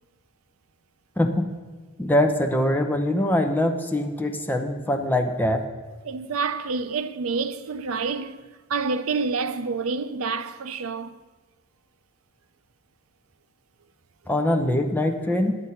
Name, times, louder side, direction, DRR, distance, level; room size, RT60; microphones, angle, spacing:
voice 1, 1.2-1.5 2.0-5.6 14.3-15.6, left 1 dB, 10° left, 0.8 m, -23 dB
voice 2, 6.0-8.4 8.7-11.2, right 4 dB, 70° right, 0.5 m, -28 dB
11.0 x 8.0 x 5.7 m
head